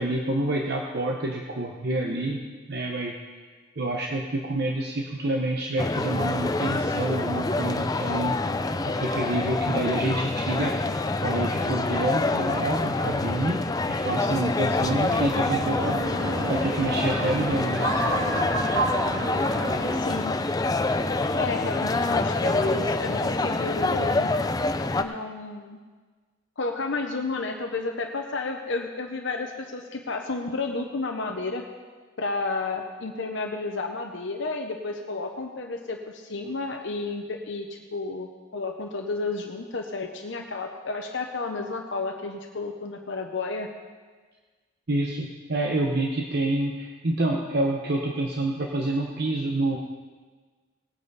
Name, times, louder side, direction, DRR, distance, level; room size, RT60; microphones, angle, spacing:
voice 1, 0.0-3.4 3.8-8.4 8.8-10.8 11.2-13.6 13.9-16.0 16.5-17.9 44.9-49.8, right 2 dB, 55° right, 0 dB, 0.9 m, -28 dB
sound 1, 5.8-25.0, left 2 dB, 20° left, 0.5 m, -26 dB
sound 2, 14.8-20.0, right 2 dB, 80° right, 2.3 m, -30 dB
voice 2, 19.9-20.4 21.4-24.3 25.0-25.8 26.6-31.6 32.2-37.7 37.9-43.7, left 3 dB, 65° left, 3 dB, 0.9 m, -31 dB
19.0 x 8.8 x 4.1 m, 1.4 s
head